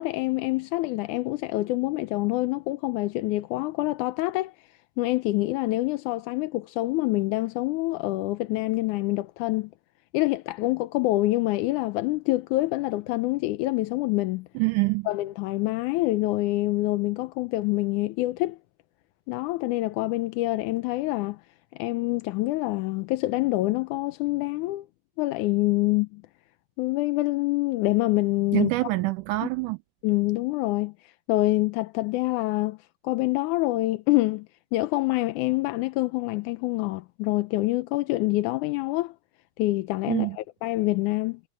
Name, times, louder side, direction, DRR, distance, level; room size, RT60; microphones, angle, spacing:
voice 1, 0.0-4.6 5.0-9.7 10.1-14.5 15.1-18.6 19.3-21.4 21.7-24.9 25.2-26.2 26.8-28.7 29.4-29.5 30.0-32.8 33.0-39.2 39.6-41.4, left 19 dB, 80° left, 1.9 m, -26 dB
voice 2, 14.6-15.1 28.5-29.8 40.1-40.4, right 22 dB, 80° right, 1.9 m, -25 dB
omnidirectional pair, 4.0 m